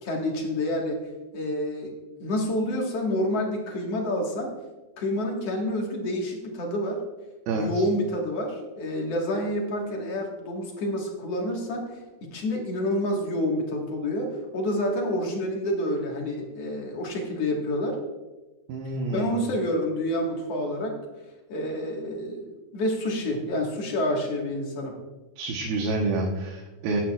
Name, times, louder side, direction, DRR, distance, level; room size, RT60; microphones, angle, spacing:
voice 1, 0.0-1.0 1.3-4.5 5.0-7.0 7.5-18.0 19.1-21.0 21.5-25.0, left 1 dB, 50° left, 0 dB, 2.2 m, -28 dB
voice 2, 18.7-19.4 25.4-27.0, right 3 dB, 90° right, 0 dB, 2.9 m, -28 dB
17.5 x 8.7 x 2.4 m, 1.1 s
omnidirectional pair, 4.2 m